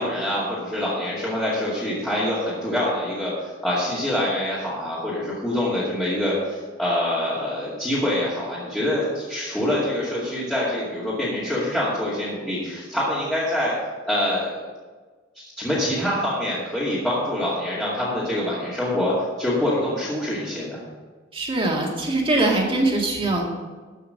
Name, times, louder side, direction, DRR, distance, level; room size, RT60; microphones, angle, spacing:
voice 1, 0.0-3.3 3.6-13.7 14.1-14.6 15.4-20.8, left 1 dB, 5° left, -10 dB, 2.3 m, -25 dB
voice 2, 21.3-23.5, right 2 dB, 30° right, -1 dB, 2.1 m, -22 dB
13.5 x 5.8 x 6.5 m, 1.4 s
head